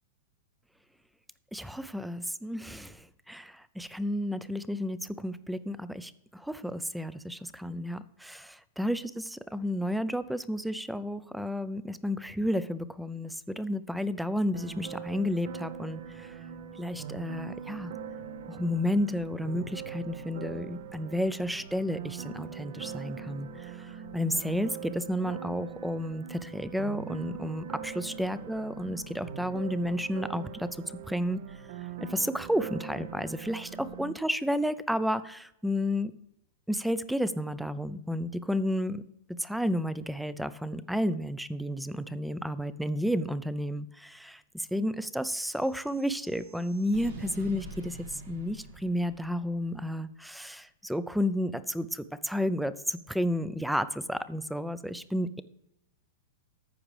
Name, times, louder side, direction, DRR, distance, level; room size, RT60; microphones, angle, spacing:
voice 1, 1.5-16.3 16.8-17.9 18.5-31.4 32.0-36.1 36.7-39.0 39.4-55.4, equal, ahead, 15 dB, 0.4 m, -32 dB
sound 1, 14.5-34.1, right 8 dB, 65° right, 0.7 m, -42 dB
sound 2, 45.4-49.7, right 3 dB, 85° right, 1.9 m, -46 dB
14.0 x 4.9 x 3.2 m, 0.84 s
hypercardioid pair, 130°, 0 cm